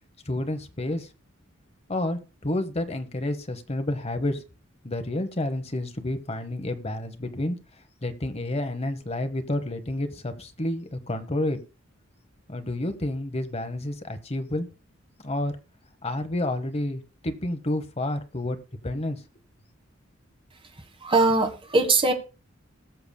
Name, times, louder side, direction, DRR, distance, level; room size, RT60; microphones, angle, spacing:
voice 1, 0.3-1.1 1.9-4.4 4.8-7.6 8.0-11.6 12.5-14.7 15.2-15.5 16.0-18.6 18.8-19.2, left 1 dB, 30° left, 8 dB, 1.1 m, -29 dB
voice 2, 21.0-22.1, right 3 dB, 25° right, 5 dB, 1.5 m, -21 dB
20.0 x 6.8 x 2.3 m, 0.31 s
head